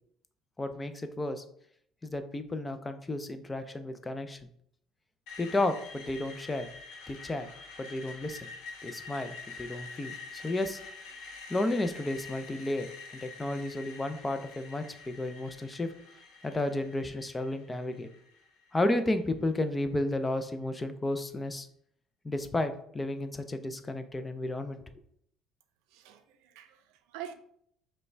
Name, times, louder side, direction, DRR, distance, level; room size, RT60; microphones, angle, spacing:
voice 1, 0.6-1.4 2.0-4.5 5.4-6.7 7.1-7.5 7.8-8.4 8.8-10.8 11.5-15.9 16.4-18.1 18.7-21.7 22.2-24.8, left 2 dB, 20° left, 9 dB, 0.4 m, -32 dB
Screech, 5.3-19.2, left 4 dB, 80° left, 1.0 m, -47 dB
voice 2, 25.9-27.3, right 10 dB, 80° right, 8 dB, 0.4 m, -45 dB
5.3 x 2.2 x 3.2 m, 0.68 s
supercardioid pair, 95°, 0 cm